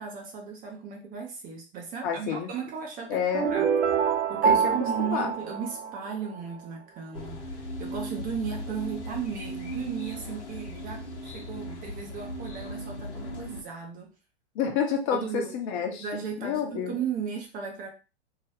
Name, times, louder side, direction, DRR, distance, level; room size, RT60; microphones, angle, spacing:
voice 1, 0.0-3.2 3.5-3.7 4.3-14.1 15.1-15.5 16.0-17.9, right 7 dB, 25° right, 2 dB, 0.5 m, -36 dB
voice 2, 2.0-2.5 3.1-3.7 4.4-4.7 5.0-5.3 14.5-16.0 16.4-17.0, left 7 dB, 45° left, 2 dB, 0.9 m, -29 dB
sound 1, 3.3-6.4, right 7 dB, 75° right, 0.6 m, -25 dB
sound 2, 7.1-13.6, equal, 85° left, 1.0 m, -37 dB
2.7 x 2.2 x 3.2 m, 0.32 s
hypercardioid pair, 110°, 34 cm